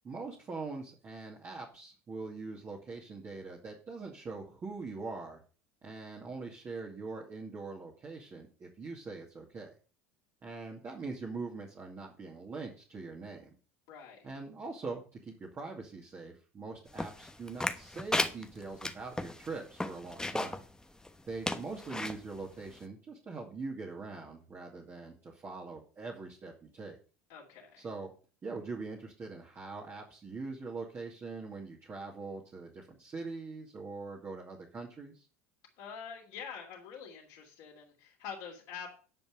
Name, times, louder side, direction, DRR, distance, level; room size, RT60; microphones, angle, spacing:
voice 1, 0.0-5.4 5.8-9.7 10.4-13.5 14.2-20.6 21.3-27.0 27.8-28.1 28.4-35.3, right 3 dB, 30° right, -2 dB, 2.3 m, -42 dB
voice 2, 13.9-14.3 27.3-27.8 35.8-38.9, left 7 dB, 60° left, -3 dB, 3.0 m, -46 dB
sound 1, 17.0-20.6 21.0-21.1 21.4-22.2 22.8-22.9, left 2 dB, 10° left, 1.1 m, -34 dB
10.0 x 5.3 x 6.5 m, 0.38 s
hypercardioid pair, 80°, 8 cm